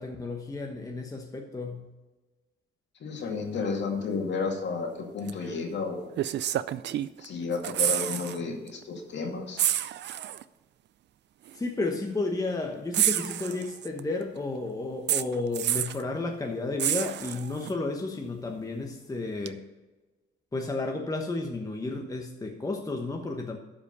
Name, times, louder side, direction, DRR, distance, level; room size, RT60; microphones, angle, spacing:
voice 1, 0.0-1.9 11.5-19.6 20.5-23.6, left 3 dB, 15° left, 2 dB, 1.1 m, -32 dB
voice 2, 3.0-6.1 7.2-9.6, left 4 dB, 65° left, 2 dB, 2.3 m, -32 dB
sound 1, 5.3-5.4 6.2-7.3 7.5-8.4 8.7-8.8 9.6-10.4 11.5-11.6 12.9-14.0 15.1-16.0 16.8-17.7 19.5-19.6, right 12 dB, 60° right, 0.5 m, -28 dB
12.0 x 5.1 x 5.6 m, 1.2 s
cardioid pair, 90°, 20 cm